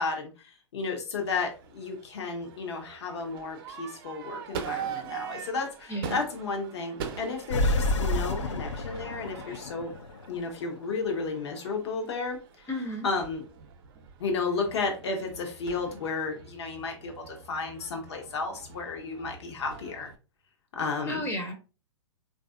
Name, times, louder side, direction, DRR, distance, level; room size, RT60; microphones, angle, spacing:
voice 1, 0.0-9.9 10.3-12.7 13.0-13.4 14.2-20.1 20.7-21.2, left 4 dB, 65° left, 3 dB, 0.9 m, -33 dB
Crowd / Fireworks, 1.2-20.2, right 7 dB, 50° right, 0.6 m, -43 dB
voice 2, 5.9-6.2 12.7-13.1 21.1-21.5, equal, 15° left, 4 dB, 0.6 m, -32 dB
sound 1, 7.5-10.9, left 2 dB, 80° left, 0.5 m, -29 dB
3.3 x 2.6 x 2.4 m, 0.33 s
hypercardioid pair, 110°, 15 cm